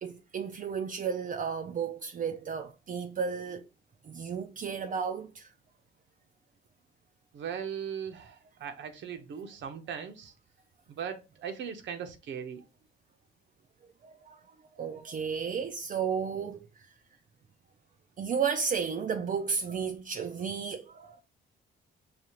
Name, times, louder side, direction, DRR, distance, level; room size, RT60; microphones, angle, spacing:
voice 1, 0.0-3.7 4.0-5.5 14.0-14.4 14.8-16.7 18.2-21.2, right 6 dB, 40° right, 0.4 m, -33 dB
voice 2, 7.3-10.3 10.9-12.6, right 7 dB, 70° right, 0.8 m, -39 dB
5.0 x 2.4 x 2.8 m
cardioid pair, 90°, 20 cm